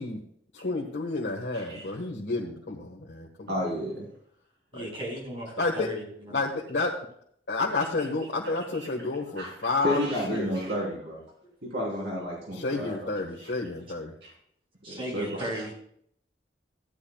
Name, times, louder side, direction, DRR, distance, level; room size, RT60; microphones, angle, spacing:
voice 1, 0.5-3.7 4.7-4.9 5.6-5.9 6.3-6.9 7.5-10.5 12.5-14.1, left 3 dB, 90° left, -2 dB, 1.4 m, -30 dB
voice 2, 1.5-2.0 3.5-4.1 8.7-8.9 9.4-9.5 9.8-11.2 11.6-13.1 13.4-13.5 14.2-14.3 14.9-15.6, equal, 75° right, -3 dB, 3.7 m, -32 dB
voice 3, 4.7-6.4 11.4-11.5 14.8-15.7, right 1 dB, 30° right, -2 dB, 4.9 m, -36 dB
15.0 x 10.5 x 2.4 m, 0.66 s
head